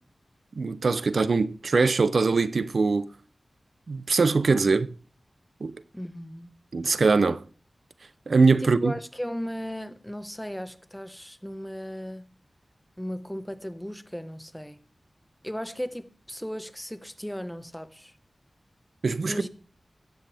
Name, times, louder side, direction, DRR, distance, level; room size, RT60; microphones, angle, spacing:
voice 1, 0.6-3.1 3.9-4.9 5.6-5.7 6.7-7.4 8.3-8.9 19.0-19.4, right 4 dB, 75° right, 0.6 m, -22 dB
voice 2, 5.9-6.5 8.6-12.3 13.0-14.8 15.4-18.1 19.2-19.5, equal, 5° left, 1.4 m, -36 dB
16.0 x 12.0 x 3.5 m
cardioid pair, 50°, 0 cm